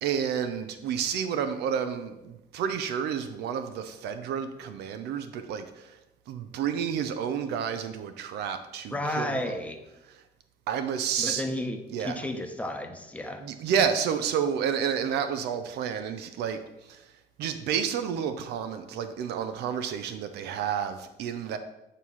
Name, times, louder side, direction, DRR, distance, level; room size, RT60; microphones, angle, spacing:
voice 1, 0.0-6.0 6.3-9.5 10.1-10.2 10.7-11.4 11.9-12.2 13.4-17.1 17.4-21.6, right 8 dB, 75° right, 9 dB, 0.6 m, -30 dB
voice 2, 8.9-9.8 11.2-13.4, left 1 dB, 10° left, 4 dB, 0.9 m, -32 dB
9.0 x 3.2 x 5.6 m, 0.93 s
cardioid pair, 110°, 17 cm